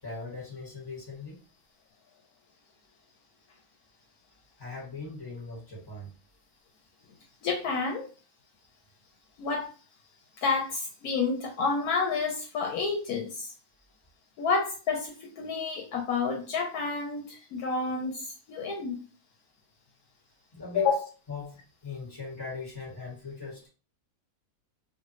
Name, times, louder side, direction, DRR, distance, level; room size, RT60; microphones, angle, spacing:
voice 1, 0.0-1.4 4.6-6.1 20.5-20.9 21.3-23.7, left 4 dB, 15° left, -4 dB, 1.3 m, -40 dB
voice 2, 7.4-8.1 9.4-9.7 10.4-13.5 14.4-19.0 20.7-20.9, left 4 dB, 75° left, 1 dB, 1.0 m, -29 dB
2.5 x 2.5 x 3.0 m, 0.36 s
omnidirectional pair, 1.7 m